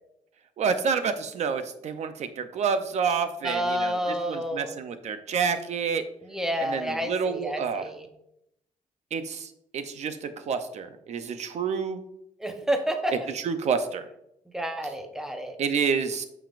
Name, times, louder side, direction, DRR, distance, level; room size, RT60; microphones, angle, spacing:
voice 1, 0.6-4.0 4.3-6.0 6.6-7.9 9.1-12.0 13.3-14.1 15.6-16.3, right 6 dB, 60° right, 9 dB, 0.6 m, -28 dB
voice 2, 3.4-4.8 6.2-8.1 12.4-13.3 14.5-15.6, equal, 5° right, 4 dB, 0.8 m, -29 dB
9.0 x 7.0 x 2.5 m, 0.79 s
wide cardioid pair, 160°, 13 cm